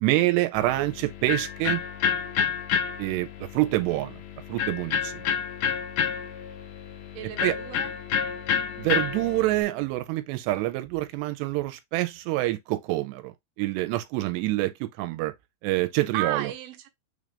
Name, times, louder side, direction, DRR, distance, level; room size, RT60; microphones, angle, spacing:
voice 1, 0.0-1.8 3.0-4.2 4.5-5.1 7.4-7.6 8.8-15.3 15.6-16.5, right 17 dB, 85° right, 2.7 m, -26 dB
Electric guitar, 0.5-9.6, left 7 dB, 70° left, 2.1 m, -30 dB
voice 2, 7.1-7.9 16.1-16.9, right 12 dB, 70° right, 2.2 m, -33 dB
6.3 x 2.5 x 3.3 m
omnidirectional pair, 4.9 m